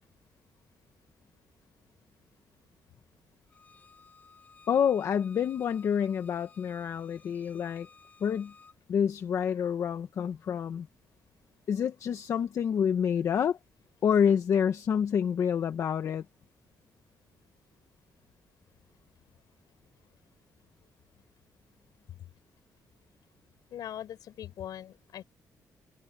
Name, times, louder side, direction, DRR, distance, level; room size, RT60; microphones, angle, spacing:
Bowed string instrument, 3.5-8.8, left 4 dB, 25° left, 4.9 m, -57 dB
voice 1, 4.7-7.9 8.2-8.5 8.9-10.9 11.7-13.6 14.0-16.2, left 8 dB, 50° left, 1.0 m, -28 dB
voice 2, 23.7-25.2, left 11 dB, 75° left, 6.6 m, -41 dB
wide cardioid pair, 170°, 7 cm